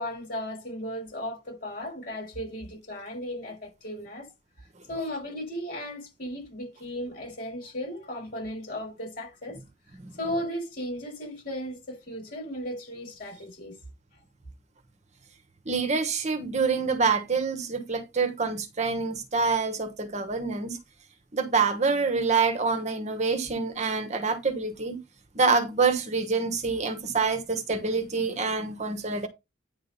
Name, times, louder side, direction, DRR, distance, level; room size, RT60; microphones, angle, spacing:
voice 1, 0.0-4.3 4.9-9.6 10.1-13.8, equal, 50° left, 6.0 m, -35 dB
voice 2, 15.7-20.8 21.3-25.0 25.3-29.3, right 4 dB, 40° right, 1.2 m, -26 dB
9.8 x 3.8 x 5.3 m
head